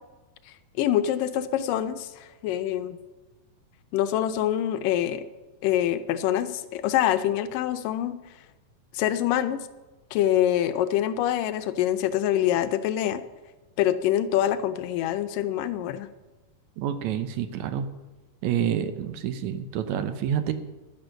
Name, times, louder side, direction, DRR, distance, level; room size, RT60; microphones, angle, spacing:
voice 1, 0.8-3.0 3.9-5.2 5.6-8.2 8.9-9.6 10.1-13.2 13.8-16.1, left 11 dB, 90° left, 12 dB, 2.4 m, -25 dB
voice 2, 16.8-17.9 18.4-20.5, right 9 dB, 70° right, 10 dB, 1.9 m, -28 dB
11.5 x 10.5 x 6.5 m, 1.2 s
omnidirectional pair, 3.8 m